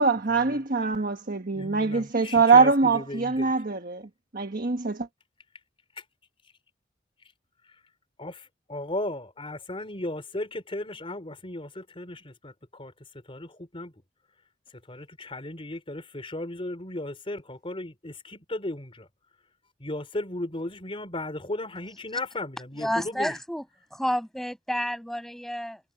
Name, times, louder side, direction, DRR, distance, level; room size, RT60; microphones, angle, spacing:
voice 1, 0.0-4.0 4.3-5.1, right 4 dB, 50° right, 1.3 m, -23 dB
voice 2, 1.5-3.5 8.2-12.9 13.3-13.9 14.9-19.1 19.8-23.3, left 1 dB, 30° left, 3.7 m, -36 dB
voice 3, 22.8-23.6 23.9-25.8, equal, ahead, 7.2 m, -30 dB
head